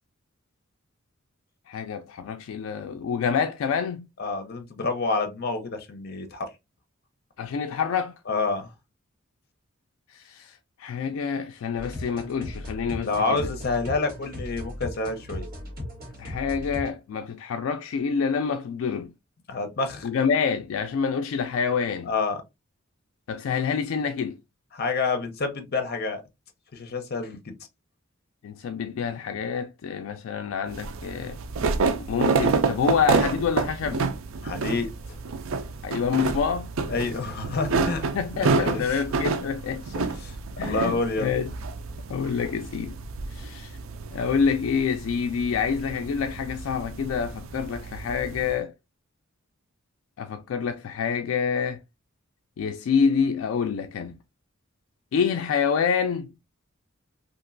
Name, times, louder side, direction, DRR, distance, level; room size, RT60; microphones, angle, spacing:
voice 1, 1.7-4.1 7.4-8.2 10.1-13.5 16.2-19.1 20.0-22.1 23.3-24.4 28.4-31.4 32.1-34.0 35.8-36.7 37.7-37.8 38.1-39.9 40.6-41.5 42.1-43.0 43.3-43.8 44.1-48.7 50.2-51.8 52.6-54.2 55.1-56.3, left 6 dB, 80° left, 0.3 m, -27 dB
voice 2, 4.2-6.5 8.3-8.7 13.0-15.5 19.5-20.1 22.1-22.4 24.7-26.2 26.7-27.5 34.4-35.2 36.9-38.1 38.4-39.0 40.0-41.3, left 3 dB, 50° left, 0.7 m, -28 dB
sound 1, 11.8-16.9, left 1 dB, 45° right, 1.5 m, -37 dB
sound 2, 30.7-48.5, right 4 dB, 75° right, 0.4 m, -29 dB
2.9 x 2.5 x 2.5 m
head